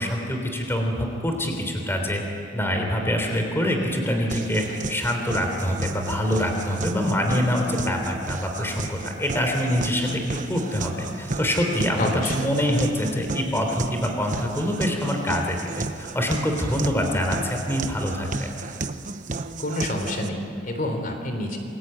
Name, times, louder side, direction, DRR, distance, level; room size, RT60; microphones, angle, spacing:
voice 1, 0.0-2.2 2.5-15.6 16.0-18.3, equal, 15° left, 2 dB, 3.5 m, -25 dB
sound 1, 4.3-20.3, right 3 dB, 45° right, 1.0 m, -34 dB
voice 2, 12.0-12.5 19.6-21.6, left 1 dB, 45° left, 5 dB, 3.6 m, -28 dB
28.5 x 21.5 x 9.1 m, 2.5 s
head